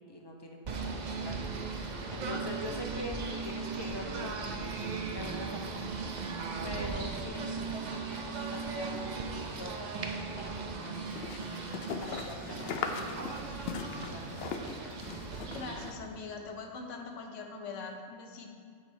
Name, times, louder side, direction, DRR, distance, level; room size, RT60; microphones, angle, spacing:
voice 1, 0.1-1.4 1.7-6.1 6.6-11.4 12.0-13.3 13.7-14.8, left 1 dB, 30° left, 1 dB, 0.5 m, -44 dB
Singing / Bird, 0.6-15.9, right 4 dB, 50° right, 0.6 m, -38 dB
sound 1, 8.7-13.5, right 6 dB, 75° right, 1.4 m, -57 dB
sound 2, 10.9-15.9, left 5 dB, 65° left, 0.7 m, -39 dB
voice 2, 15.5-18.5, left 4 dB, 80° left, 3 dB, 1.1 m, -42 dB
8.6 x 3.1 x 6.1 m, 2.2 s
omnidirectional pair, 1.2 m